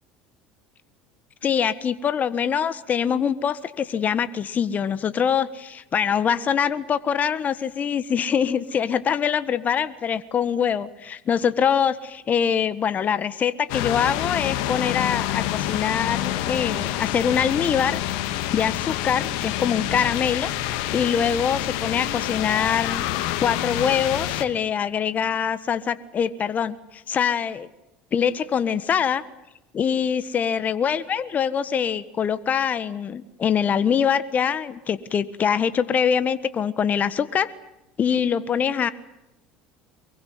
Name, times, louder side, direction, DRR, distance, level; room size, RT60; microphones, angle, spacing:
voice 1, 1.4-18.0 18.2-23.0 23.4-27.7 28.1-29.2 29.7-37.5 38.0-38.9, left 7 dB, 40° left, 14 dB, 1.4 m, -24 dB
sound 1, 13.7-24.4, left 13 dB, 70° left, 2.4 m, -27 dB
24.5 x 22.5 x 9.5 m, 0.93 s
hypercardioid pair, 80°, 4 cm